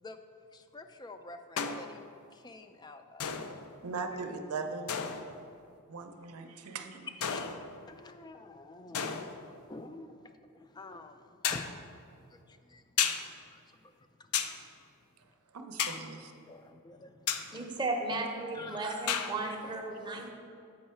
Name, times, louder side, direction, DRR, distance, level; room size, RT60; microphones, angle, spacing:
voice 1, 0.5-2.0 2.3-3.4 7.3-7.5 7.9-9.1 9.7-10.2 10.7-11.1 11.5-11.6 12.7-12.8 16.5-17.5 18.5-18.8 19.4-19.6, left 2 dB, 20° left, 8 dB, 0.3 m, -47 dB
sound 1, 1.6-2.0 3.2-3.8 4.9-5.5 7.2-7.9 8.9-9.5 11.4-11.8 13.0-13.3 14.3-14.6 15.8-16.1 17.3-17.5 19.1-19.3, left 7 dB, 80° left, 0.4 m, -33 dB
voice 2, 3.8-4.9 5.9-7.1 15.5-16.3, right 4 dB, 85° right, 6 dB, 0.6 m, -39 dB
voice 3, 17.5-20.3, right 2 dB, 20° right, 2 dB, 0.6 m, -35 dB
7.9 x 5.5 x 4.3 m, 2.5 s
head